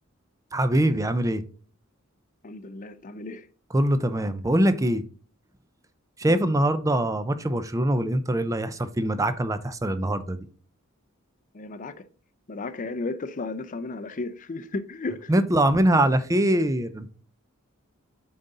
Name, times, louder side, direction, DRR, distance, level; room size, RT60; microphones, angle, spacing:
voice 1, 0.5-1.4 3.7-5.0 6.2-10.4 15.3-17.1, right 1 dB, 15° right, 0.4 m, -23 dB
voice 2, 2.4-3.5 6.2-6.4 11.5-12.1 12.5-15.3, left 3 dB, 35° left, 0.5 m, -34 dB
7.3 x 3.9 x 4.0 m
head